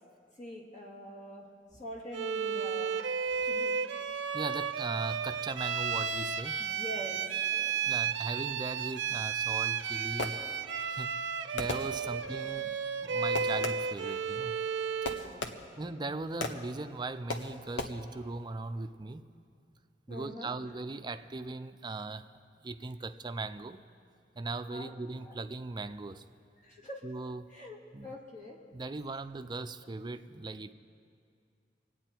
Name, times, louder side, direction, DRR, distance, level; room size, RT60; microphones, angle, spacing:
voice 1, 0.4-1.5 1.8-3.0 3.4-3.8 6.6-7.2 7.5-7.8 12.0-12.2 15.1-15.5 20.1-20.5 24.7-24.9 25.2-25.4 26.6-27.0 27.5-27.8 28.0-28.6, equal, 45° left, -2 dB, 2.3 m, -44 dB
Bowed string instrument, 2.1-15.3, right 6 dB, 80° right, 0.6 m, -33 dB
voice 2, 4.3-6.7 7.9-10.4 10.9-11.2 11.5-14.6 15.8-19.2 20.1-22.3 22.6-23.8 24.3-26.2 27.0-27.5 27.9-28.2 28.7-30.7, right 3 dB, 25° right, 9 dB, 0.5 m, -39 dB
Fireworks, 9.7-10.8 11.6-12.4 13.3-14.1 15.0-15.9 16.4-16.8 17.3-17.8, left 2 dB, 85° left, 1.0 m, -38 dB
26.0 x 9.1 x 4.5 m, 2.4 s
head